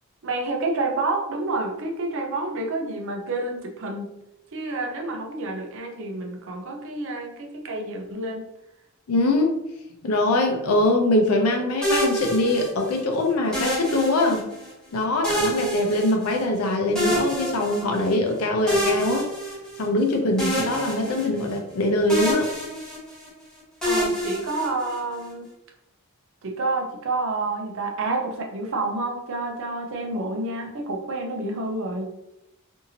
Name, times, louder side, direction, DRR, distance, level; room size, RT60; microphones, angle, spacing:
voice 1, 0.2-4.2 4.5-8.5 23.8-25.5 26.4-32.1, right 2 dB, 60° right, 2 dB, 0.5 m, -29 dB
voice 2, 9.1-9.5 10.0-14.5 14.9-19.3 19.8-22.5, left 2 dB, 85° left, 3 dB, 0.5 m, -22 dB
sound 1, 11.8-13.0 13.5-14.7 15.2-16.6 17.0-18.1 18.7-20.0 20.4-21.8 22.1-23.3 23.8-25.2, equal, 5° left, 0.9 m, -27 dB
2.7 x 2.6 x 2.7 m, 0.86 s
head